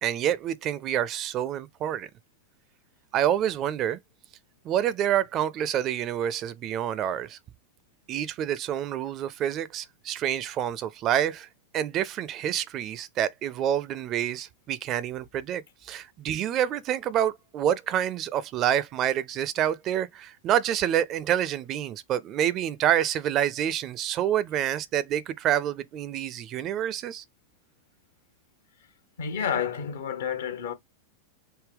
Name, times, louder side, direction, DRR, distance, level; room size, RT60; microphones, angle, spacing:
voice 1, 0.0-2.1 3.1-4.0 4.6-7.4 8.1-27.2, right 10 dB, 35° right, 0.4 m, -27 dB
voice 2, 29.2-30.7, left 7 dB, 60° left, 0.8 m, -30 dB
3.7 x 2.1 x 3.4 m
figure-of-eight pair, 90°, 0 cm